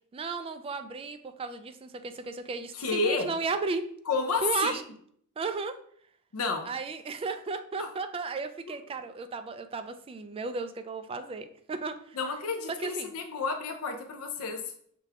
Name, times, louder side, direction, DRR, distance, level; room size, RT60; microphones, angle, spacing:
voice 1, 0.1-3.8 4.4-4.8 5.4-5.8 6.6-12.2 12.8-13.1, right 4 dB, 25° right, 9 dB, 0.3 m, -34 dB
voice 2, 2.8-3.3 4.1-4.8 6.3-6.7 7.8-7.9 12.2-14.6, left 4 dB, 70° left, 5 dB, 0.5 m, -30 dB
5.8 x 2.3 x 3.4 m, 0.63 s
head